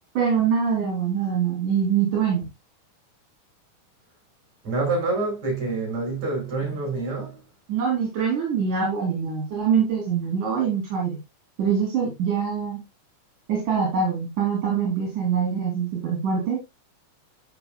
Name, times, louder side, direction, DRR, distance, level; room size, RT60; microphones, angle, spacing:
voice 1, 0.1-2.4 7.7-11.2 11.6-12.8 13.5-16.8, right 6 dB, 80° right, 4.9 m, -24 dB
voice 2, 4.6-7.4, right 3 dB, 60° right, 8.0 m, -27 dB
14.5 x 6.4 x 2.3 m
omnidirectional pair, 3.6 m